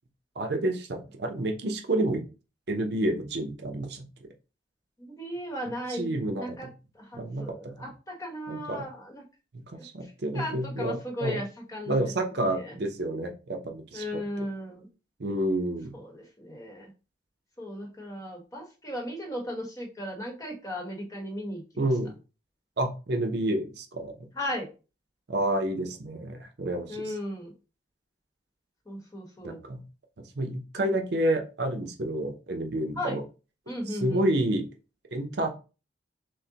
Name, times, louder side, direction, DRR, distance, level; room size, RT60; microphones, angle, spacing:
voice 1, 0.4-2.2 2.7-4.1 5.9-6.7 7.1-7.9 8.5-8.8 9.5-11.4 11.9-14.5 15.2-15.9 21.8-22.1 22.8-24.1 25.3-27.1 29.4-29.8 30.4-33.2 33.9-34.7 35.1-35.5, right 1 dB, 60° right, 4 dB, 0.6 m, -29 dB
voice 2, 5.0-6.7 6.9-9.2 9.7-12.0 12.6-12.7 13.9-14.9 15.9-16.9 17.6-21.9 24.3-24.7 26.9-27.5 28.9-29.6 33.0-33.2 33.7-34.2, left 1 dB, 20° left, 0 dB, 1.0 m, -36 dB
6.1 x 2.1 x 2.8 m, 0.32 s
head